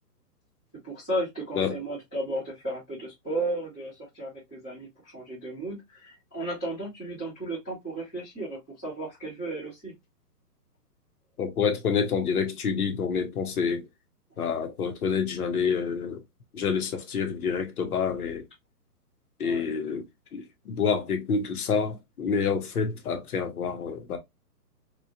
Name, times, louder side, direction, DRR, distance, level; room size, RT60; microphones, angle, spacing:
voice 1, 0.8-4.9 5.1-9.9 19.4-19.6, right 1 dB, 5° left, 0.4 m, -34 dB
voice 2, 11.4-13.9 14.4-16.2 16.5-18.5 19.4-20.0 20.3-24.2, left 6 dB, 65° left, 0.9 m, -28 dB
3.0 x 2.4 x 2.3 m
hypercardioid pair, 145°, 49 cm